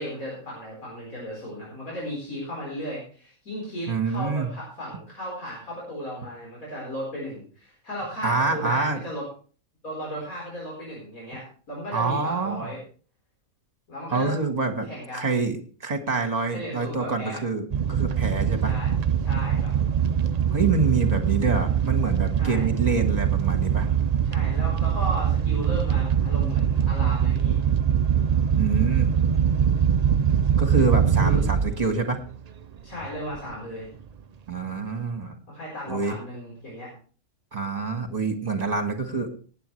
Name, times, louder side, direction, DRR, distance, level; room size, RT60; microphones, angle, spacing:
voice 1, 0.0-9.3 9.8-12.8 13.9-14.3 14.9-15.3 16.5-17.4 18.6-18.9 19.2-19.7 22.4-22.7 24.2-27.6 31.2-31.4 32.8-33.9 35.5-36.9, equal, 85° left, -4 dB, 5.0 m, -35 dB
voice 2, 3.9-4.5 8.2-9.0 11.9-12.7 14.1-18.7 20.5-23.9 28.6-29.1 30.6-32.2 34.5-35.4 35.9-36.1 37.5-39.3, right 4 dB, 30° right, 6 dB, 1.6 m, -26 dB
sound 1, 17.7-31.9 32.2-32.6 33.0-33.1 33.4-33.5, right 8 dB, 65° right, 0.4 m, -23 dB
18.5 x 9.2 x 3.2 m, 0.40 s
omnidirectional pair, 1.4 m